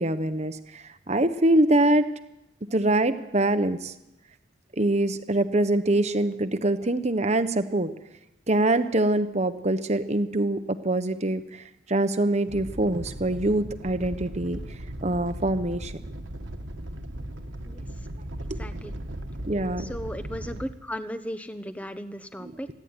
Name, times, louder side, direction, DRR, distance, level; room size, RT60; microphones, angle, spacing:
voice 1, 0.0-2.0 2.7-3.9 4.8-7.9 8.5-11.6 11.9-14.6 15.0-15.9 18.5-18.6 19.5-19.9 22.4-22.5, right 1 dB, 35° right, 10 dB, 1.1 m, -24 dB
Animal, 12.5-20.6, right 1 dB, 70° right, 1.6 m, -37 dB
voice 2, 18.6-18.9 19.8-22.7, equal, 5° left, 10 dB, 1.0 m, -36 dB
25.5 x 10.5 x 9.7 m, 0.89 s
head